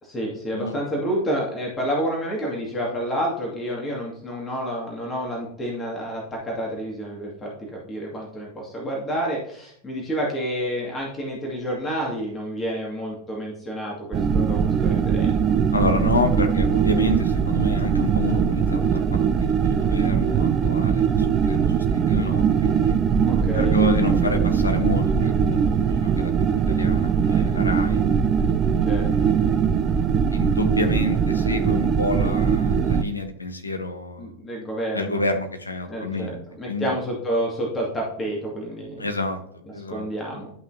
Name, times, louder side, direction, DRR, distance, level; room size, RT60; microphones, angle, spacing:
voice 1, 0.0-15.6 23.2-23.7 24.2-24.4 28.8-29.1 34.2-35.2 35.9-39.1 39.9-40.5, equal, 20° left, -2 dB, 2.2 m, -29 dB
sound 1, 14.1-33.0, right 7 dB, 25° right, 0.5 m, -21 dB
voice 2, 15.7-22.9 23.5-25.6 25.9-28.0 29.2-29.3 30.3-34.3 34.9-36.9 39.0-40.1, left 2 dB, 80° left, 5 dB, 1.2 m, -29 dB
11.5 x 5.7 x 2.8 m, 0.66 s
figure-of-eight pair, 90°, 0 cm